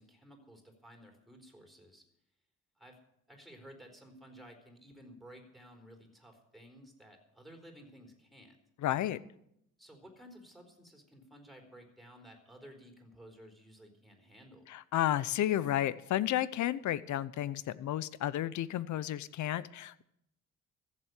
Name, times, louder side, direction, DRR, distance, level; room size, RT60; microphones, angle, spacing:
voice 1, 0.0-2.0 2.8-3.0 3.3-8.6 9.8-14.7, equal, ahead, 3 dB, 4.3 m, -55 dB
voice 2, 8.8-9.2 14.7-20.0, left 12 dB, 70° left, 17 dB, 0.8 m, -32 dB
15.0 x 7.6 x 9.7 m, 0.76 s
cardioid pair, 90°, 30 cm